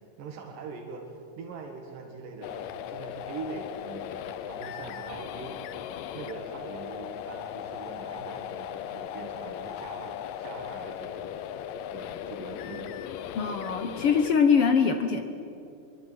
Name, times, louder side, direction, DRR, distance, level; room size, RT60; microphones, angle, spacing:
voice 1, 0.2-5.8 6.1-11.3 11.9-13.0, right 4 dB, 80° right, 1 dB, 3.5 m, -42 dB
sound 1, 2.4-14.4, left 10 dB, 90° left, 2.6 m, -38 dB
voice 2, 13.4-15.2, left 6 dB, 60° left, 7 dB, 1.6 m, -23 dB
24.0 x 23.0 x 9.2 m, 2.7 s
omnidirectional pair, 3.8 m